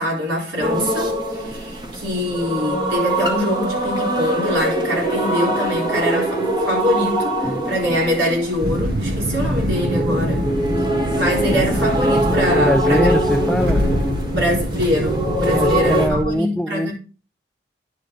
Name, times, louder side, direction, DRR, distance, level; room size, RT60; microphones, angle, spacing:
voice 1, 0.0-10.5 11.1-13.5 14.3-16.9, left 1 dB, 85° right, 3.9 m, -23 dB
sound 1, 0.6-16.1, right 1 dB, 25° right, 1.5 m, -23 dB
sound 2, 8.6-16.2, equal, 65° right, 1.6 m, -24 dB
voice 2, 12.5-13.8 15.5-16.9, equal, ahead, 0.4 m, -22 dB
10.0 x 5.1 x 3.8 m
head